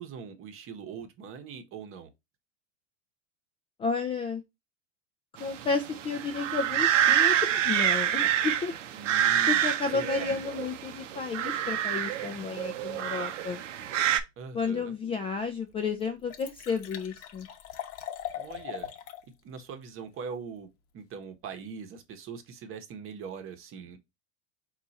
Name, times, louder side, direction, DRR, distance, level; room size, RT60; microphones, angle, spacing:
voice 1, 0.0-2.1 8.9-9.6 9.9-10.3 14.4-14.9 18.3-18.9 19.4-24.0, right 6 dB, 35° right, 0.9 m, -42 dB
voice 2, 3.8-4.4 5.4-8.8 9.5-13.6 14.5-17.5, left 4 dB, 15° left, 0.3 m, -32 dB
sound 1, 5.4-14.2, right 10 dB, 80° right, 0.7 m, -27 dB
Liquid, 15.1-15.2 15.7-15.8 16.0-19.2 19.6-19.7, left 10 dB, 40° left, 0.9 m, -40 dB
4.5 x 2.5 x 3.9 m
hypercardioid pair, 105°, 36 cm